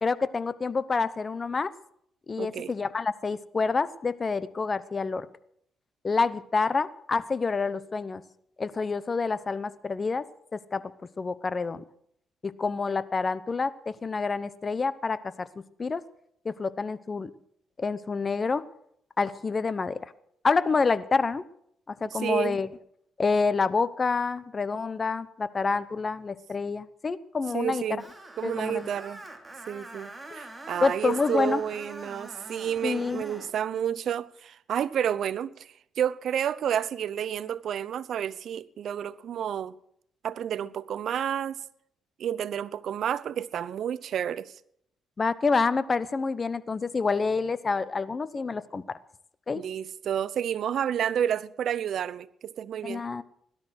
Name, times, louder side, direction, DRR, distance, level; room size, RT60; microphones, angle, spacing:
voice 1, 0.0-1.7 2.3-5.3 6.0-8.2 8.6-10.2 10.5-10.9 11.2-11.8 12.4-15.5 15.8-16.0 16.4-17.3 17.8-18.6 19.2-20.1 20.4-21.4 21.9-22.7 23.2-27.8 28.4-28.9 30.8-31.6 32.8-33.2 45.2-49.0 49.5-49.6 52.8-53.2, left 4 dB, 35° left, 0.9 m, -28 dB
voice 2, 2.4-2.7 22.0-22.6 27.5-28.0 28.4-29.2 29.7-35.7 36.0-39.8 40.2-41.6 42.2-44.5 49.5-53.0, right 9 dB, 65° right, 0.7 m, -30 dB
Screech, 28.0-33.5, right 2 dB, 15° right, 2.8 m, -44 dB
17.0 x 12.5 x 6.4 m
cardioid pair, 90°, 0 cm